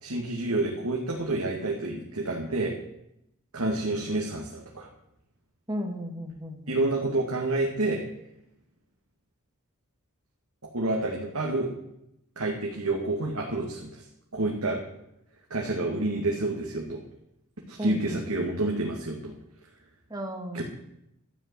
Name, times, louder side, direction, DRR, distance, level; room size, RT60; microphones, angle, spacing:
voice 1, 0.0-2.7 3.5-4.9 6.7-8.0 10.7-11.7 12.4-14.0 14.3-14.8 15.5-17.0 17.7-19.3 20.5-20.6, right 2 dB, 70° right, -1 dB, 2.4 m, -29 dB
voice 2, 5.7-6.8 17.8-18.2 20.1-20.6, equal, 20° right, 3 dB, 2.3 m, -34 dB
13.0 x 7.9 x 10.0 m, 0.80 s
head